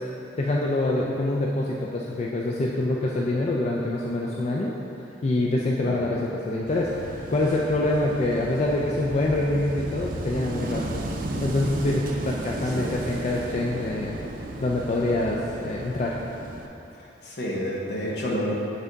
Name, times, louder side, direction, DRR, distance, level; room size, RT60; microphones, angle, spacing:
voice 1, 0.0-4.7 5.2-11.0 11.4-14.2 14.6-16.2, left 2 dB, 40° left, -3 dB, 0.3 m, -25 dB
Wind / Waves surf, 6.7-16.7, right 1 dB, 50° right, 0.5 m, -34 dB
voice 2, 17.2-18.5, equal, 65° left, -3 dB, 1.0 m, -29 dB
8.1 x 3.4 x 3.9 m, 2.8 s
head